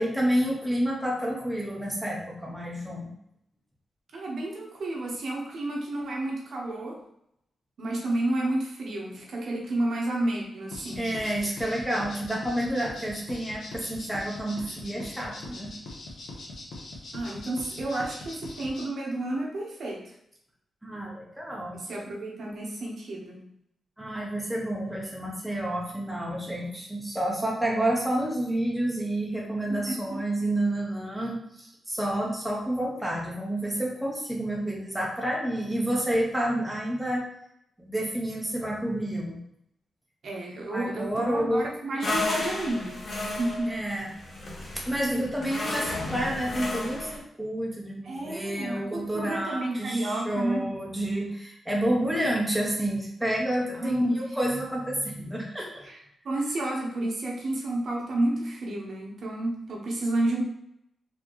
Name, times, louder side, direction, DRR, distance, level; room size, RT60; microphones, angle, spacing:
voice 1, 0.0-3.1 11.0-15.7 20.8-21.8 24.0-37.2 37.8-39.4 40.7-41.7 42.1-42.2 43.7-44.1 44.9-55.9, right 1 dB, 5° right, -3 dB, 0.7 m, -29 dB
voice 2, 4.1-7.0 7.8-11.1 17.1-20.1 21.7-23.5 29.7-30.2 40.2-43.8 48.0-50.7 53.7-54.4 55.8-56.0 56.2-60.4, right 1 dB, 55° right, -2 dB, 1.0 m, -31 dB
sound 1, 10.7-18.8, left 2 dB, 80° left, 1.0 m, -41 dB
sound 2, 42.0-47.2, left 2 dB, 40° left, 0.8 m, -33 dB
4.3 x 2.8 x 3.0 m, 0.76 s
wide cardioid pair, 150°, 0 cm